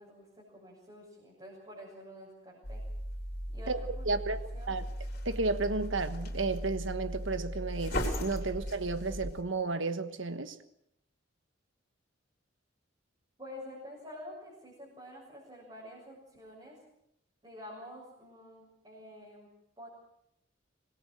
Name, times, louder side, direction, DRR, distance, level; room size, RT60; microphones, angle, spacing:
voice 1, 0.0-2.8 3.5-4.8 13.4-16.8 17.4-19.9, left 1 dB, 25° right, 7.0 m, -49 dB
sound 1, 2.6-9.4, equal, 50° left, 4.1 m, -37 dB
voice 2, 4.0-4.4 4.7-4.8 5.2-10.6, right 3 dB, 75° right, 1.4 m, -32 dB
25.5 x 20.0 x 6.6 m
head